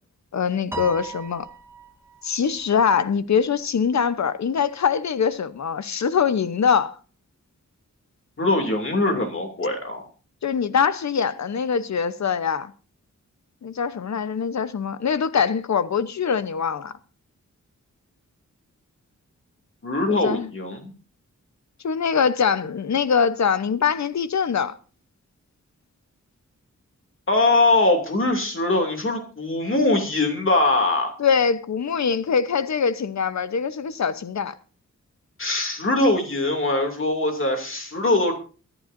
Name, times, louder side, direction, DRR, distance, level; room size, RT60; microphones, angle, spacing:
voice 1, 0.3-1.5 2.2-7.0 10.4-12.7 13.6-16.9 20.1-20.5 21.8-24.8 31.2-34.5, left 6 dB, 65° left, 0.9 m, -23 dB
Piano, 0.7-2.3, right 4 dB, 10° right, 1.6 m, -36 dB
voice 2, 8.4-10.1 19.8-20.9 27.3-31.2 35.4-38.3, left 2 dB, 45° left, 2.6 m, -22 dB
23.5 x 11.0 x 2.6 m
wide cardioid pair, 120°, 30 cm